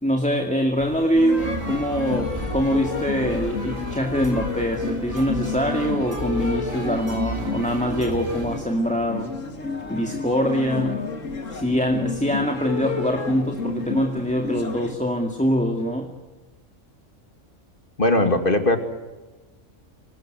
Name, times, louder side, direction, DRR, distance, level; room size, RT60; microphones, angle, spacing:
voice 1, 0.0-9.3 9.9-11.0 11.5-16.1 18.2-18.3, equal, 5° left, 3 dB, 2.2 m, -24 dB
sound 1, 0.8-5.3, equal, 20° left, 3.1 m, -42 dB
sound 2, 1.2-15.0, left 4 dB, 65° left, 3.0 m, -31 dB
sound 3, 1.4-8.6, right 1 dB, 25° right, 4.9 m, -33 dB
voice 2, 18.0-18.8, left 1 dB, 40° left, 7 dB, 2.6 m, -19 dB
26.5 x 19.5 x 9.2 m, 1.2 s
omnidirectional pair, 1.4 m